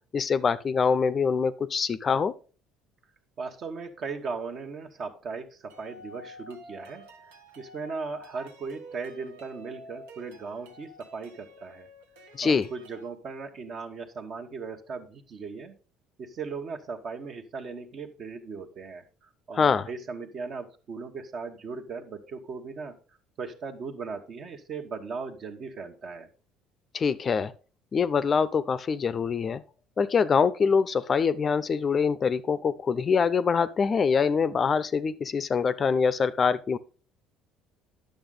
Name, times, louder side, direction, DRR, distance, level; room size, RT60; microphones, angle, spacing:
voice 1, 0.1-2.3 12.3-12.7 19.5-19.9 26.9-27.5 27.9-29.6 30.0-36.8, left 5 dB, 40° left, 0.5 m, -24 dB
voice 2, 3.4-7.1 7.6-11.9 12.4-15.7 16.2-23.0 23.4-26.3, right 4 dB, 50° right, 1.1 m, -38 dB
sound 1, 5.7-13.1, equal, 80° right, 1.0 m, -49 dB
9.5 x 6.5 x 3.8 m
hypercardioid pair, 60°, 0 cm